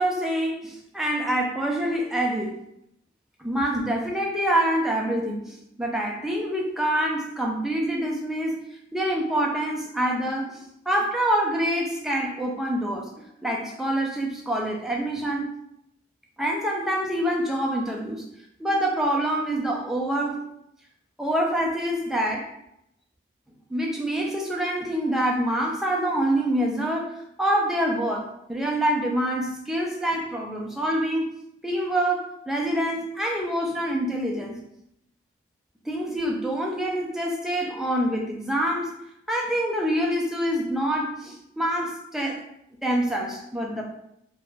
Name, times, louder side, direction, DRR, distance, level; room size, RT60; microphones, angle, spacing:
voice 1, 0.0-2.6 3.4-8.6 8.9-10.6 10.9-13.1 13.4-15.5 16.4-18.2 18.6-20.4 21.2-22.5 23.7-27.1 27.4-31.3 31.6-34.6 35.9-39.0 39.3-42.4 42.8-43.8, right 1 dB, ahead, -1 dB, 0.3 m, -26 dB
2.4 x 2.2 x 3.0 m, 0.77 s
head